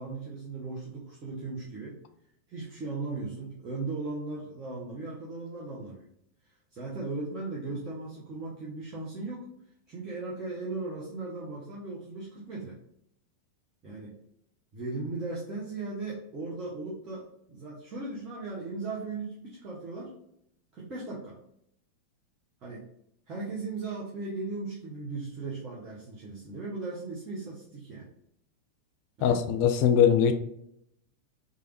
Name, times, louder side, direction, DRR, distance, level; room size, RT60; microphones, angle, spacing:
voice 1, 0.0-2.0 2.5-6.1 6.7-9.5 9.9-12.8 13.8-14.2 14.7-20.1 20.7-21.4 22.6-22.9 23.3-28.1 29.2-29.4, right 3 dB, 30° right, -5 dB, 0.8 m, -37 dB
voice 2, 29.2-30.3, left 8 dB, 45° left, 8 dB, 0.3 m, -21 dB
3.3 x 2.4 x 3.1 m, 0.74 s
figure-of-eight pair, 90°, 0 cm